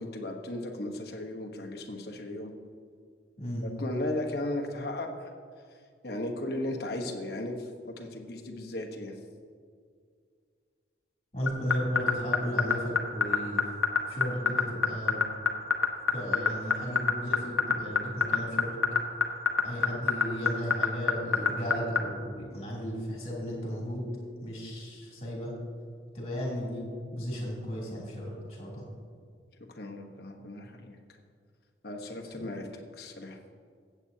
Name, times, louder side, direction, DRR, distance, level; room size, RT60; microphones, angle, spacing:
voice 1, 0.0-2.5 3.8-5.3 6.0-9.1 29.8-31.0 31.8-32.7 33.0-33.4, left 1 dB, 55° left, 2 dB, 1.1 m, -36 dB
voice 2, 11.3-13.6 14.1-15.2 16.1-18.8 19.6-24.1 24.4-25.5 26.1-26.8 27.1-28.8, equal, 35° left, -4 dB, 2.9 m, -34 dB
sound 1, 11.5-22.0, left 6 dB, 85° left, 0.9 m, -23 dB
15.5 x 8.3 x 2.8 m, 2.1 s
head